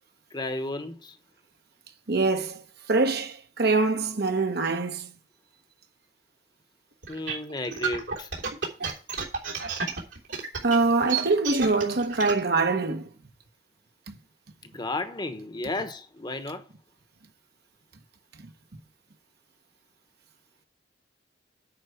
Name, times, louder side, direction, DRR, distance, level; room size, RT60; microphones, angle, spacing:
voice 1, 0.3-1.1 7.1-8.3 14.6-16.6, left 2 dB, 25° left, 1.0 m, -33 dB
voice 2, 2.1-2.6 2.9-5.1 10.6-13.1 14.1-14.2, right 3 dB, 60° right, 1.1 m, -24 dB
sound 1, 7.0-12.4, right 6 dB, 80° right, 3.3 m, -31 dB
9.8 x 4.8 x 7.9 m
head